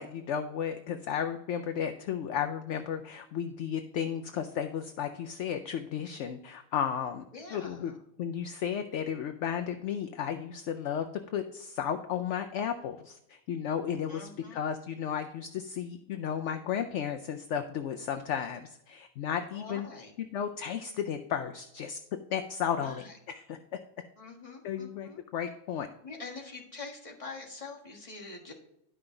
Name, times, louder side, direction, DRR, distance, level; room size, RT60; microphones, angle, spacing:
voice 1, 0.0-7.2 7.5-7.9 8.2-11.1 11.3-19.9 20.2-22.0 22.3-23.6 24.6-25.9, left 8 dB, 65° left, 7 dB, 0.9 m, -34 dB
voice 2, 7.3-7.9 14.1-14.6 19.5-20.1 22.8-23.1 24.2-25.2 26.0-28.5, left 3 dB, 25° left, -2 dB, 1.6 m, -44 dB
11.0 x 5.9 x 3.8 m, 0.84 s
omnidirectional pair, 1.4 m